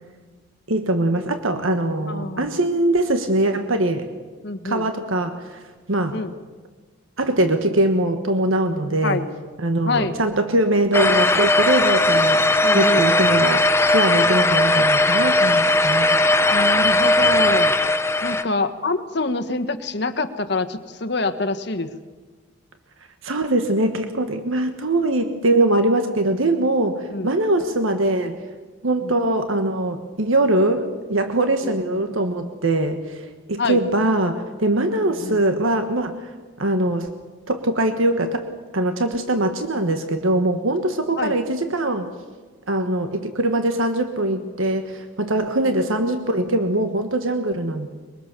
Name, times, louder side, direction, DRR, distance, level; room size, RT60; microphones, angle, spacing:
voice 1, 0.7-4.1 4.6-5.6 5.9-6.2 7.2-9.2 9.6-12.4 12.7-16.2 23.2-28.4 28.8-36.3 36.6-37.1 37.5-38.4 38.7-42.1 42.7-47.9, right 1 dB, 75° right, 7 dB, 1.4 m, -22 dB
voice 2, 2.1-2.5 4.4-4.9 6.1-6.3 9.0-9.3 9.8-10.2 12.6-13.1 16.5-17.7 18.2-21.9 27.1-27.3 29.0-29.1 31.6-32.0 33.6-33.8 34.9-35.4 41.2-41.4 45.6-45.7, left 3 dB, 55° left, 10 dB, 1.4 m, -26 dB
sound 1, 10.9-18.4, left 2 dB, 15° left, 0.8 m, -18 dB
23.0 x 23.0 x 6.8 m, 1.4 s
head